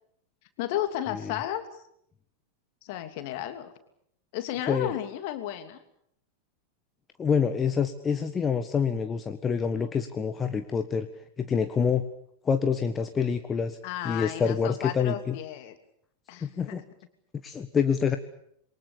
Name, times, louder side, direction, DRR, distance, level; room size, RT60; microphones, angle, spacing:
voice 1, 0.6-1.8 2.8-3.7 4.3-5.8 13.8-15.8 16.3-16.8, left 12 dB, 50° left, 9 dB, 2.9 m, -33 dB
voice 2, 7.2-11.1 11.4-12.0 12.4-13.8 14.0-15.4 16.4-16.8 17.4-18.2, left 6 dB, 20° left, 8 dB, 1.4 m, -26 dB
27.5 x 23.0 x 7.1 m, 0.71 s
figure-of-eight pair, 90°, 0 cm